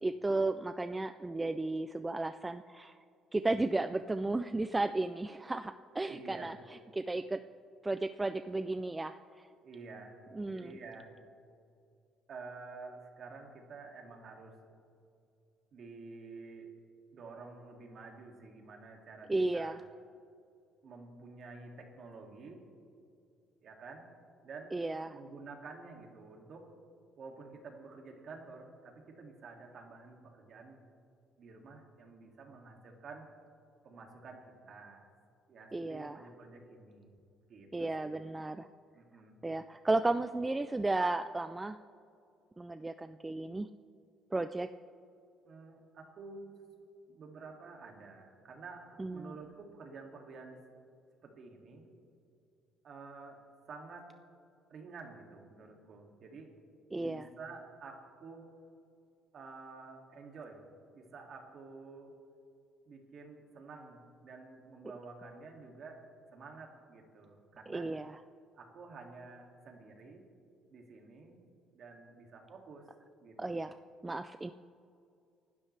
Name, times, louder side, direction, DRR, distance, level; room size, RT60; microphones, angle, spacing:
voice 1, 0.0-3.0 3.3-6.6 6.9-7.4 7.8-9.5 10.4-10.7 19.3-19.8 24.7-25.2 35.7-36.2 37.7-38.7 39.4-41.8 42.6-43.7 44.3-44.7 49.0-49.3 56.9-57.3 67.7-68.1 73.4-73.8 74.0-74.5, right 2 dB, 10° right, 10 dB, 0.3 m, -34 dB
voice 2, 6.1-6.6 9.5-10.2 10.5-11.1 12.3-14.6 15.7-16.7 17.1-19.8 20.8-22.6 23.6-24.1 24.4-24.8 25.1-26.7 27.2-30.8 31.4-33.3 33.8-35.1 35.5-37.1 37.5-38.2 38.9-39.4 45.4-46.6 47.1-50.6 51.2-51.9 52.8-53.4 53.7-54.1 54.7-56.5 56.9-58.5 59.3-60.6 60.9-62.1 62.9-66.1 66.3-67.9 68.5-70.3 70.7-71.4 71.7-72.9 73.2-73.7, right 4 dB, 45° right, 2 dB, 2.4 m, -50 dB
29.5 x 12.0 x 3.3 m, 2.5 s
cardioid pair, 150°, 0 cm